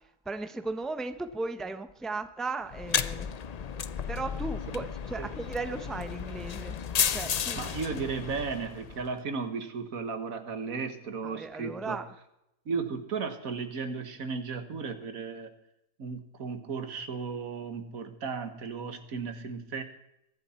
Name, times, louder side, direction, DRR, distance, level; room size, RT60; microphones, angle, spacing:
voice 1, 0.3-3.3 4.1-6.8 7.1-7.7 11.2-12.0, right 3 dB, ahead, 9 dB, 0.6 m, -36 dB
sound 1, 2.7-9.1, left 7 dB, 80° left, 0.3 m, -33 dB
voice 2, 7.6-12.0 12.7-15.5 16.0-19.8, right 5 dB, 75° right, 8 dB, 1.9 m, -35 dB
23.0 x 11.0 x 4.3 m, 0.84 s
omnidirectional pair, 1.5 m